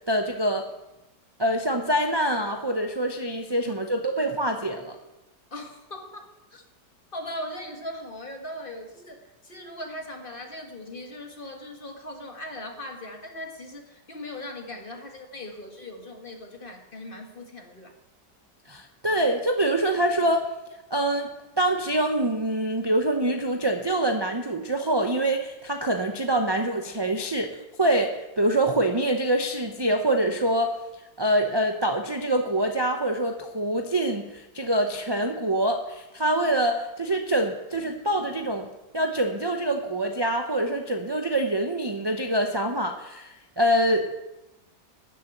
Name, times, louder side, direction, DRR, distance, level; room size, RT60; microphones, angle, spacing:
voice 1, 0.1-0.7 1.4-5.0 18.7-20.5 20.9-21.3 21.6-30.7 31.2-38.7 38.9-44.2, right 1 dB, 25° right, 3 dB, 0.5 m, -25 dB
voice 2, 5.5-6.6 7.1-17.9 37.1-37.2 37.8-37.9, left 1 dB, 30° left, 3 dB, 1.9 m, -39 dB
13.0 x 6.9 x 9.0 m, 0.97 s
omnidirectional pair, 1.9 m